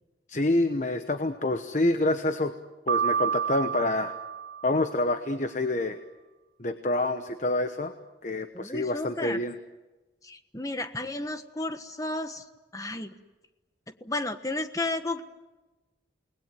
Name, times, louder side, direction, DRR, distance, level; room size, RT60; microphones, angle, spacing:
voice 1, 0.3-2.5 2.9-4.1 4.6-6.0 6.6-7.9 8.2-9.6, left 2 dB, 40° left, 9 dB, 1.1 m, -27 dB
Piano, 2.9-5.0, right 7 dB, 70° right, 3.1 m, -29 dB
voice 2, 8.5-9.4 10.2-12.4 12.7-13.1 14.0-15.2, left 2 dB, 20° left, 9 dB, 1.3 m, -33 dB
29.0 x 20.0 x 9.2 m, 1.1 s
head